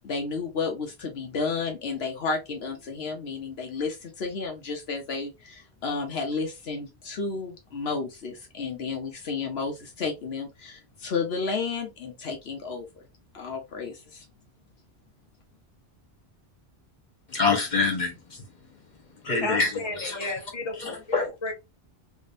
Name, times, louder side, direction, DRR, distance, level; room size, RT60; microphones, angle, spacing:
voice 1, 0.0-12.9 13.3-14.2, left 4 dB, 75° left, 1.1 m, -32 dB
voice 2, 17.3-18.4 19.2-20.2 20.8-21.3, left 4 dB, 45° left, 1.4 m, -26 dB
voice 3, 19.4-21.5, left 2 dB, 25° left, 1.0 m, -33 dB
3.3 x 3.3 x 2.6 m
omnidirectional pair, 1.1 m